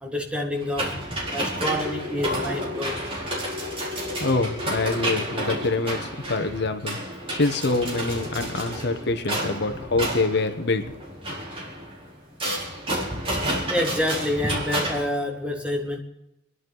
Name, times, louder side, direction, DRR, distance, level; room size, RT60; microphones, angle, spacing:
voice 1, 0.0-3.1 13.1-13.4 13.7-16.0, left 1 dB, 5° right, 1 dB, 1.9 m, -28 dB
sound 1, 0.6-15.1, equal, 30° right, 3.9 m, -30 dB
voice 2, 4.2-7.0 7.3-10.9, left 3 dB, 60° left, 8 dB, 1.1 m, -25 dB
27.0 x 11.0 x 4.0 m, 0.86 s
head